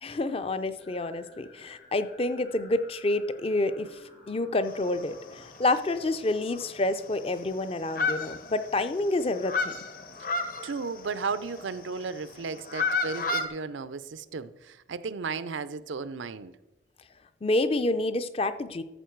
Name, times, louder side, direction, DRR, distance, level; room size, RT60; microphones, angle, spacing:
voice 1, 0.0-4.0 4.3-9.7 17.4-18.8, left 2 dB, 30° left, 0.5 m, -28 dB
sound 1, 0.8-7.7, equal, 60° left, 4.3 m, -55 dB
sound 2, 4.7-5.3 5.7-5.8 6.2-6.3 6.5-7.5 7.8-8.9 9.2-11.7 12.4-13.5, left 3 dB, 45° left, 0.9 m, -31 dB
voice 2, 10.6-16.5, right 4 dB, 80° right, 0.5 m, -34 dB
13.0 x 7.1 x 4.6 m
head